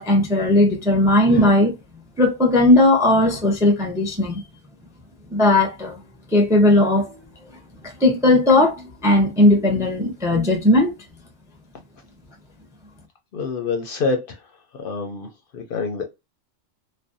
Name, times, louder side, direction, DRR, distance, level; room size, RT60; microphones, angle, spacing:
voice 1, 0.0-1.7 2.2-4.4 5.3-6.0 6.3-7.1 8.0-10.9, left 1 dB, 5° right, 0.3 m, -17 dB
voice 2, 13.3-14.4 14.8-15.3 15.5-16.0, left 4 dB, 60° left, 0.6 m, -26 dB
2.5 x 2.1 x 2.5 m
omnidirectional pair, 1.2 m